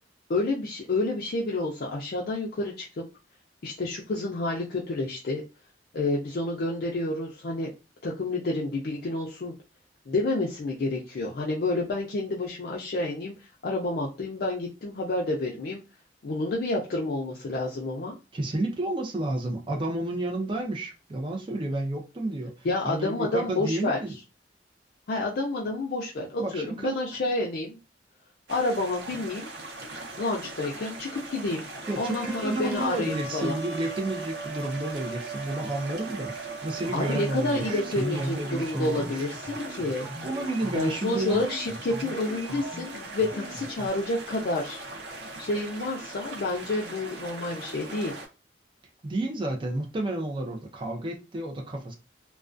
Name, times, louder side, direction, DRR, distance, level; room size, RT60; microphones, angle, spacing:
voice 1, 0.3-3.1 3.6-5.4 5.9-7.7 8.0-9.5 10.1-15.8 16.2-18.1 22.6-24.2 25.1-27.8 28.5-29.5 30.2-31.6 32.0-33.6 36.9-40.1 40.7-44.8 45.4-48.2, left 2 dB, 60° left, 0.4 m, -29 dB
voice 2, 18.3-24.1 26.4-26.9 31.9-39.3 40.2-41.4 49.0-51.9, right 1 dB, 30° right, 0.4 m, -31 dB
sound 1, 28.5-48.3, right 2 dB, 75° right, 0.7 m, -41 dB
sound 2, 31.8-38.0, right 4 dB, 5° left, 0.8 m, -39 dB
sound 3, 36.8-43.9, right 1 dB, 50° right, 1.2 m, -41 dB
2.2 x 2.2 x 2.4 m
head